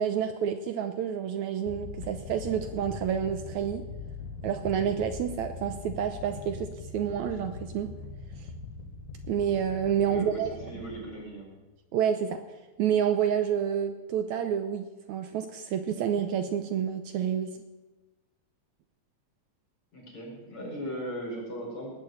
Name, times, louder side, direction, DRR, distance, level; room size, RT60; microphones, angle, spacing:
voice 1, 0.0-3.8 4.4-6.7 6.9-7.9 9.3-10.5 10.8-10.9 11.9-12.4 12.8-17.5, right 8 dB, 75° right, 8 dB, 2.0 m, -29 dB
sound 1, 1.7-11.7, left 4 dB, 70° left, 2.6 m, -42 dB
voice 2, 10.1-11.5 19.9-21.9, equal, 40° left, -3 dB, 6.0 m, -38 dB
19.0 x 7.0 x 9.2 m, 1.1 s
omnidirectional pair, 3.7 m